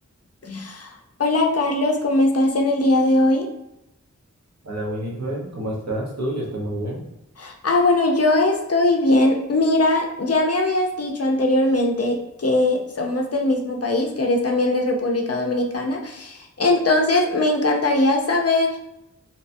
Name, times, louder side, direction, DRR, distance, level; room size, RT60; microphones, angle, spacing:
voice 1, 0.4-0.9 1.2-3.5 7.4-18.8, left 2 dB, 55° left, 2 dB, 0.5 m, -20 dB
voice 2, 4.6-7.0, right 1 dB, 60° right, -3 dB, 0.8 m, -28 dB
2.7 x 2.2 x 2.5 m, 0.88 s
wide cardioid pair, 45°, 30 cm